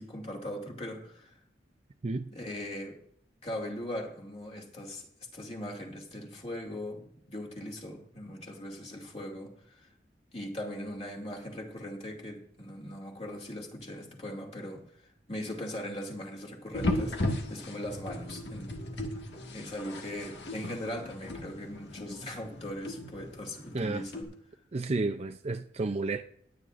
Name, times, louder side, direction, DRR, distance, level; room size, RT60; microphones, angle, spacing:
voice 1, 0.0-1.3 2.3-3.0 3.4-5.1 5.3-9.9 10.3-14.8 15.3-19.1 19.5-24.3, left 1 dB, 35° left, 2.4 m, -40 dB
sound 1, 16.7-24.2, left 1 dB, 70° left, 1.7 m, -36 dB
voice 2, 23.7-24.1 24.7-26.2, right 3 dB, 35° right, 0.5 m, -31 dB
21.5 x 9.5 x 2.5 m
head